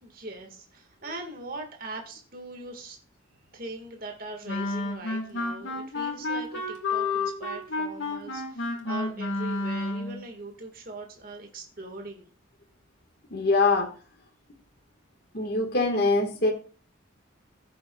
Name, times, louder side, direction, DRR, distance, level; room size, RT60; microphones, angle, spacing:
voice 1, 0.0-3.0 3.5-12.3, right 2 dB, 45° right, 3 dB, 1.7 m, -41 dB
Wind instrument woodwind instrument, 4.5-10.2, left 3 dB, 70° left, 1.9 m, -30 dB
voice 2, 13.3-13.9 15.3-16.5, left 3 dB, 50° left, 2 dB, 1.6 m, -23 dB
16.0 x 7.4 x 2.3 m, 0.38 s
head